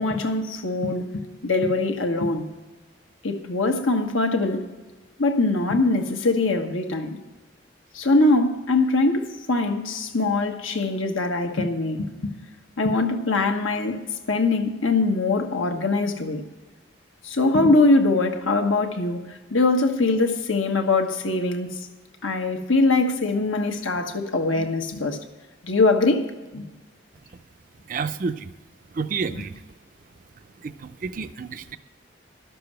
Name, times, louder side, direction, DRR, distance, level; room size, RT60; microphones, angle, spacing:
voice 1, 0.0-2.5 3.2-4.7 5.2-7.2 7.9-12.3 12.8-14.0 14.3-16.4 17.2-21.8 22.2-25.2 25.6-26.2 26.5-26.6 29.3-29.4, left 2 dB, 90° left, 1.3 m, -22 dB
voice 2, 27.9-28.5 28.9-29.6 30.6-31.8, right 5 dB, 45° right, 0.4 m, -30 dB
12.0 x 6.8 x 7.7 m
head